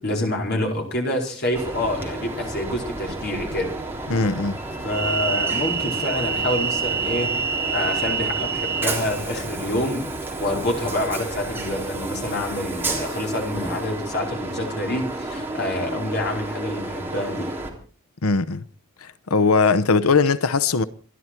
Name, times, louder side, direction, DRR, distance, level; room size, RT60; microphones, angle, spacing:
voice 1, 0.0-3.7 4.8-7.4 7.7-17.5, left 1 dB, 50° left, 4.8 m, -27 dB
Train, 1.5-17.7, right 4 dB, 10° right, 3.4 m, -29 dB
voice 2, 4.1-4.6 18.2-18.6 19.0-20.8, left 4 dB, 80° left, 0.8 m, -20 dB
27.5 x 11.5 x 4.5 m
head